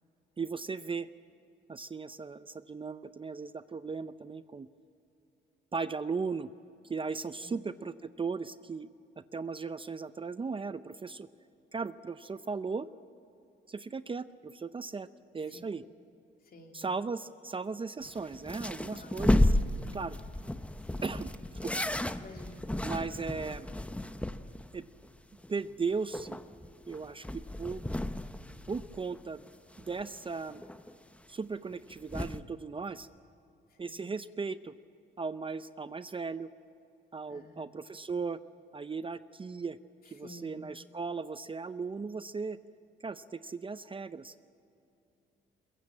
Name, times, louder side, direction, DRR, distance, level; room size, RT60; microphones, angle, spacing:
voice 1, 0.4-1.1 1.7-4.7 5.7-6.5 6.8-8.9 9.2-11.3 11.7-12.9 13.7-15.1 15.3-15.8 16.7-20.2 21.0-21.3 21.6-21.8 22.8-23.7 24.7-24.9 25.5-26.4 26.9-27.8 28.7-29.5 29.8-30.6 31.3-33.1 33.8-34.7 35.2-36.5 37.1-38.4 38.7-39.8 40.1-42.6 43.0-44.3, right 4 dB, 25° right, 12 dB, 0.6 m, -37 dB
voice 2, 16.5-16.8 18.9-19.2 20.9-21.1 22.2-22.6 33.8-34.0 37.3-37.6 40.2-40.6, left 2 dB, 50° left, 2 dB, 3.2 m, -51 dB
sound 1, 18.0-24.7 25.0-25.1 25.4-25.5 25.9-29.5 29.7-30.9 31.7-32.4, left 1 dB, 5° left, 0.9 m, -33 dB
22.5 x 22.5 x 7.7 m, 2.8 s
cardioid pair, 90°, 20 cm